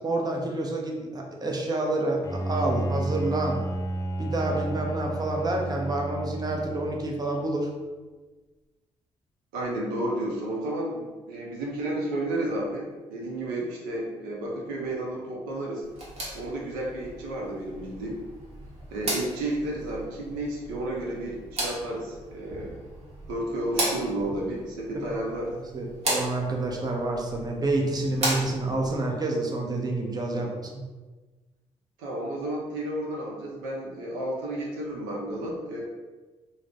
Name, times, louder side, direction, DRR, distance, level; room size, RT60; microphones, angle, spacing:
voice 1, 0.0-3.6 4.2-7.7 25.7-30.8, right 2 dB, 30° right, 0 dB, 0.6 m, -28 dB
Bowed string instrument, 2.2-7.2, right 2 dB, 25° left, 0.4 m, -31 dB
voice 2, 9.5-15.8 16.3-18.2 18.9-22.8 23.3-25.6 30.3-30.5 32.0-35.8, right 1 dB, 85° right, -3 dB, 0.5 m, -32 dB
sound 1, 15.8-28.9, right 1 dB, 50° right, 0.9 m, -36 dB
2.4 x 2.0 x 3.4 m, 1.3 s
hypercardioid pair, 50°, 14 cm